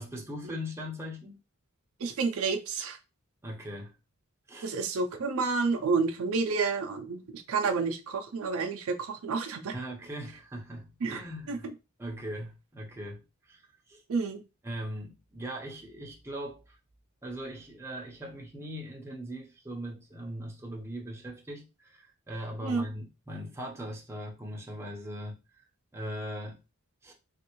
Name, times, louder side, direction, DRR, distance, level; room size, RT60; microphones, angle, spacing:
voice 1, 0.0-1.4 3.4-3.9 4.5-4.7 9.7-11.6 12.0-13.2 13.5-13.6 13.9-14.0 14.6-16.8 17.2-25.4 25.9-26.6 27.0-27.1, equal, 10° right, 0.7 m, -40 dB
voice 2, 2.0-3.0 4.6-9.7 11.0-11.2 11.5-11.7 14.1-14.4 22.6-22.9, right 4 dB, 70° right, 0.5 m, -30 dB
3.4 x 2.5 x 2.9 m
head